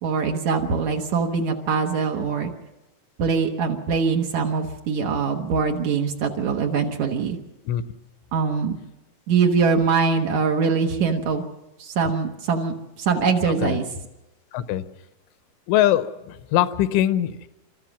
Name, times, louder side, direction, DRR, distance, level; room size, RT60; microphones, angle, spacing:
voice 1, 0.0-2.5 3.2-7.4 8.3-8.8 9.3-11.4 11.8-13.9, right 5 dB, 70° right, 2 dB, 1.7 m, -23 dB
voice 2, 13.5-13.8 14.5-14.8 15.7-17.5, left 12 dB, 90° left, 12 dB, 3.3 m, -22 dB
28.5 x 13.5 x 7.2 m, 0.96 s
omnidirectional pair, 5.4 m